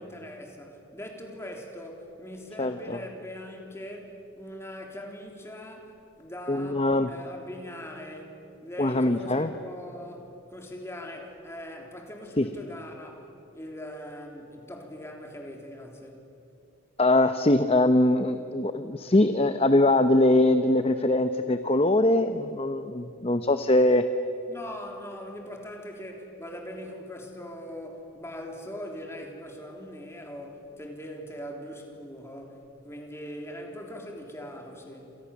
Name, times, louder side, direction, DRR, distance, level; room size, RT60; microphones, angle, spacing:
voice 1, 0.0-8.4 8.6-16.2 24.5-35.2, equal, 15° left, 1 dB, 3.6 m, -41 dB
voice 2, 2.6-3.0 6.5-7.1 8.8-9.5 12.4-12.5 17.0-24.0, left 1 dB, 30° left, 9 dB, 0.8 m, -22 dB
29.0 x 27.0 x 7.2 m, 2.8 s
head